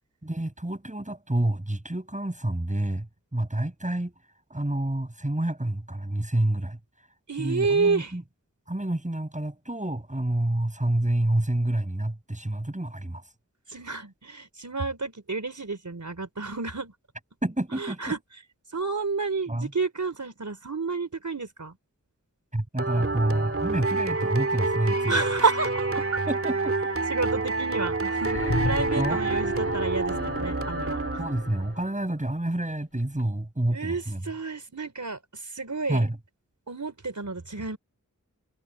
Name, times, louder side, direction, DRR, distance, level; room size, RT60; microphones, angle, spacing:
voice 1, 0.2-4.1 4.5-6.8 7.4-8.2 8.7-13.2 17.4-18.0 19.5-19.7 22.5-25.2 26.3-26.7 29.0-29.2 31.2-34.2 35.9-36.2, right 1 dB, 25° right, 7.9 m, -28 dB
voice 2, 7.3-8.2 13.7-16.9 17.7-18.2 18.7-21.8 25.1-26.0 27.1-28.4 28.6-31.2 33.7-36.0 36.7-37.8, right 4 dB, 65° right, 4.3 m, -30 dB
sound 1, 22.8-31.7, right 3 dB, 45° right, 2.2 m, -28 dB
sound 2, 28.2-32.0 33.2-33.3, left 2 dB, 45° left, 5.0 m, -34 dB
wide cardioid pair, 65°, 32 cm